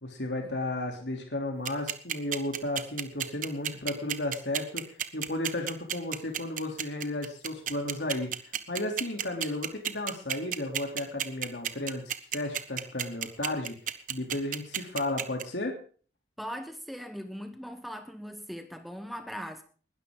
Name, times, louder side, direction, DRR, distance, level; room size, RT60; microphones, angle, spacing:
voice 1, 0.0-12.0 12.3-15.8, left 1 dB, 75° left, 3.2 m, -34 dB
sound 1, 1.7-15.4, right 10 dB, 45° right, 1.2 m, -31 dB
voice 2, 16.4-19.6, equal, ahead, 1.0 m, -39 dB
20.5 x 12.5 x 3.8 m
head